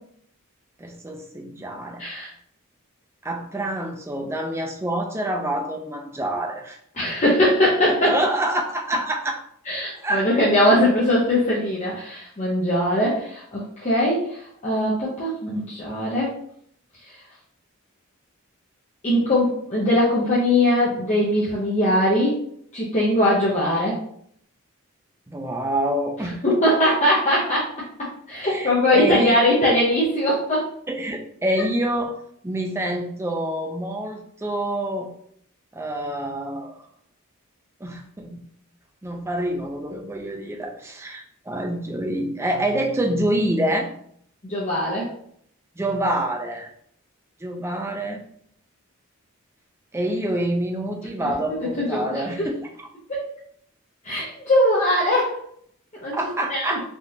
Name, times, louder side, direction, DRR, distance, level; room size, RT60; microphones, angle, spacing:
voice 1, 0.8-2.0 3.2-6.8 8.0-9.4 10.0-10.3 25.3-26.4 28.4-29.4 30.9-32.2 32.4-35.1 35.7-36.7 37.8-38.4 39.0-43.9 45.8-46.7 47.4-48.2 49.9-52.6 56.1-56.8, right 1 dB, 10° right, 3 dB, 0.3 m, -26 dB
voice 2, 2.0-2.3 7.0-8.1 9.7-16.3 19.0-22.4 22.7-24.0 26.2-27.6 28.3-30.7 44.4-45.1 51.6-52.5 53.1-53.3 54.0-55.3 56.0-56.2 56.5-56.8, left 1 dB, 35° left, -7 dB, 0.7 m, -21 dB
3.5 x 2.4 x 2.7 m, 0.66 s
head